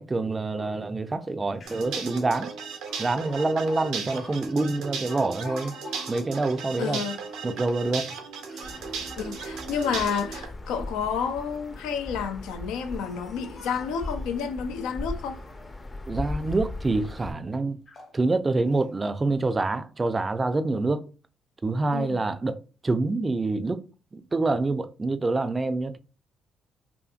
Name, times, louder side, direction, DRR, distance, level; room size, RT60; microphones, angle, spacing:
voice 1, 0.0-2.5 3.0-5.8 6.1-7.0 7.4-8.1 16.1-17.8 18.1-21.0 21.6-22.6 22.8-23.8 24.1-26.0, right 3 dB, 30° right, 0.4 m, -26 dB
Speech, 1.3-1.4 1.5-2.1 2.9-6.7 7.2-8.8 9.4-10.2 11.1-11.7 12.4-14.4 14.9-15.8 16.1-16.7 17.2-17.3 17.8-18.2 18.6-18.9, left 4 dB, 45° left, 0.9 m, -49 dB
sound 1, 1.6-10.5, right 5 dB, 80° right, 0.6 m, -36 dB
voice 2, 6.8-7.2 9.2-15.4 21.9-22.2, left 6 dB, 80° left, 0.4 m, -30 dB
sound 2, 8.6-17.3, left 2 dB, 25° left, 0.5 m, -38 dB
2.7 x 2.6 x 2.4 m
supercardioid pair, 60°, 0 cm